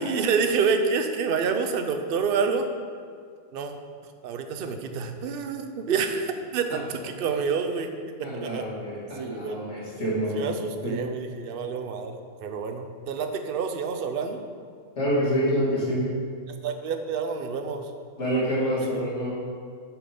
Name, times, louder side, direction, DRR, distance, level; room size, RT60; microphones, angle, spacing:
voice 1, 0.0-2.7 3.5-3.8 4.2-7.9 8.4-8.6 9.2-9.6 10.4-14.4 16.6-17.9 18.9-19.0, right 5 dB, 50° right, 6 dB, 0.8 m, -28 dB
voice 2, 8.2-10.5 10.8-11.0 14.9-16.0 18.2-19.5, equal, 55° left, -7 dB, 2.7 m, -27 dB
8.6 x 6.2 x 5.3 m, 2.1 s
omnidirectional pair, 1.5 m